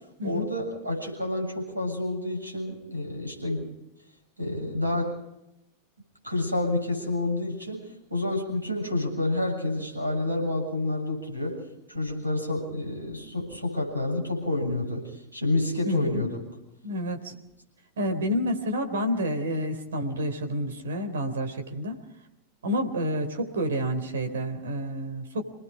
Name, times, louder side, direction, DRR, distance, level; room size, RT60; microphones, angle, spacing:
voice 1, 0.2-3.7 4.4-5.2 6.2-11.6 11.9-15.0 15.3-16.4, left 2 dB, 85° right, 2 dB, 7.6 m, -29 dB
voice 2, 15.8-16.2 16.8-17.3 18.0-22.0 22.6-25.4, equal, 65° right, 7 dB, 3.7 m, -29 dB
27.5 x 19.5 x 5.0 m, 0.89 s
figure-of-eight pair, 90°, 0 cm